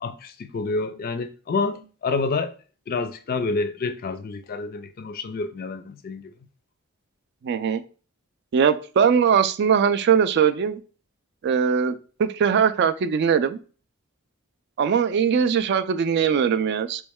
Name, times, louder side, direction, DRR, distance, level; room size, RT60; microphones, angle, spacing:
voice 1, 0.0-2.5 2.9-6.3, left 3 dB, 45° left, 0.4 m, -28 dB
voice 2, 7.4-7.8 8.5-10.8 11.4-11.9 12.2-13.6 14.8-17.0, right 7 dB, 50° right, 0.3 m, -20 dB
3.1 x 3.1 x 3.5 m
head